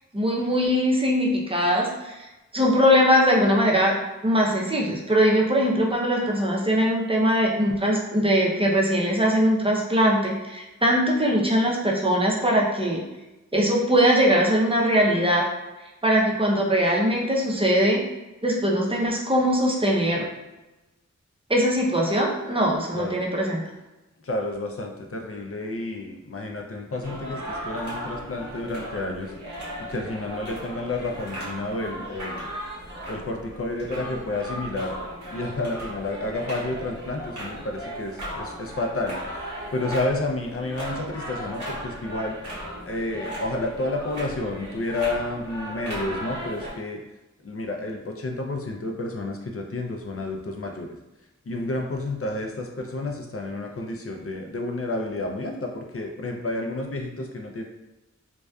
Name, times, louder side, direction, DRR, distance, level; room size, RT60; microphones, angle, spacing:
voice 1, 0.1-2.3 2.5-3.9 4.2-13.0 13.5-15.4 16.0-18.0 18.4-20.3 21.5-23.6, equal, 20° right, -2 dB, 0.5 m, -21 dB
voice 2, 24.2-29.3 29.8-32.5 33.1-35.0 35.3-39.4 39.7-42.4 42.8-47.0 47.4-50.9 51.5-57.6, left 2 dB, 50° left, 2 dB, 0.4 m, -30 dB
sound 1, 27.0-46.7, equal, 90° right, 0.8 m, -36 dB
2.5 x 2.2 x 2.2 m, 1.0 s
wide cardioid pair, 40°, 29 cm